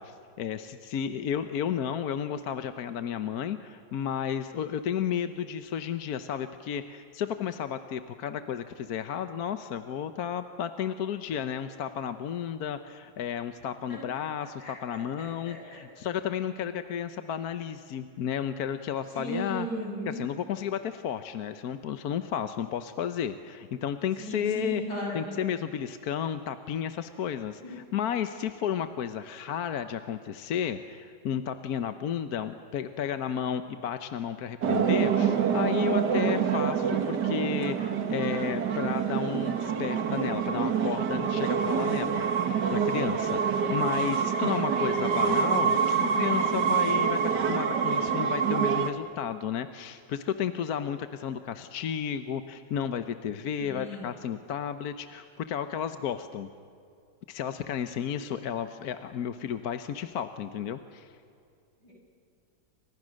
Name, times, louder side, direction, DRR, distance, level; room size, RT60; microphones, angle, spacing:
voice 1, 0.0-19.7 20.1-24.8 25.1-56.5 57.3-61.1, left 8 dB, 65° left, 10 dB, 1.3 m, -33 dB
voice 2, 15.2-15.6 19.1-20.2 24.2-25.3 27.6-27.7 53.6-54.1 61.8-61.9, equal, 85° left, -3 dB, 8.3 m, -35 dB
sound 1, 34.6-48.9, right 7 dB, 80° right, 2.1 m, -26 dB
29.5 x 25.5 x 6.4 m, 2.4 s
omnidirectional pair, 1.8 m